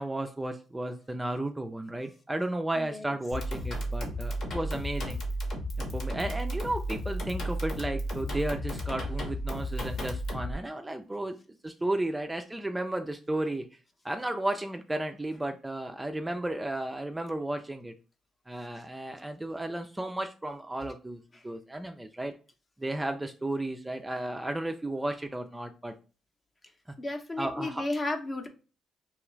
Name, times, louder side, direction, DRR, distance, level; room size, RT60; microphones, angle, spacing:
voice 1, 0.0-5.2 5.9-11.3 11.6-13.7 14.0-17.9 18.5-22.3 22.8-25.9 27.4-27.8, right 1 dB, 10° right, 5 dB, 0.3 m, -33 dB
sound 1, 3.3-10.5, equal, 65° left, 1.0 m, -33 dB
voice 2, 27.0-28.5, left 2 dB, 25° left, 5 dB, 0.6 m, -33 dB
3.0 x 2.4 x 3.1 m, 0.35 s
cardioid pair, 90°, 0 cm